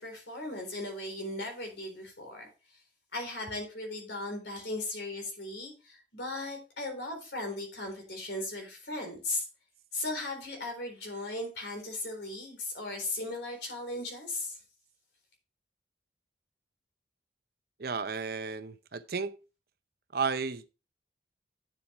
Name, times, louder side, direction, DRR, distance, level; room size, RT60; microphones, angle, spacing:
voice 1, 0.0-2.5 3.1-9.5 9.9-14.6, left 2 dB, 75° left, 4.0 m, -37 dB
voice 2, 17.8-19.3 20.1-20.7, right 5 dB, 55° right, 0.7 m, -33 dB
10.0 x 7.3 x 3.3 m
head